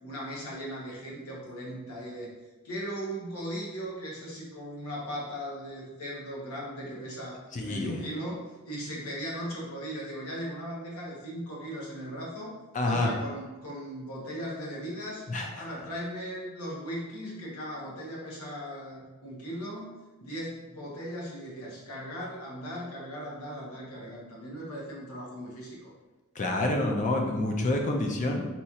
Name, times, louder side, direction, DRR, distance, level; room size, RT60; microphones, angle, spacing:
voice 1, 0.0-2.3 2.6-12.6 12.8-15.2 15.6-25.9, equal, 80° left, -4 dB, 1.1 m, -38 dB
voice 2, 7.5-8.0 12.7-13.1 15.3-15.5 26.4-28.5, left 2 dB, 35° left, 2 dB, 0.5 m, -27 dB
4.2 x 2.4 x 2.8 m, 1.2 s
head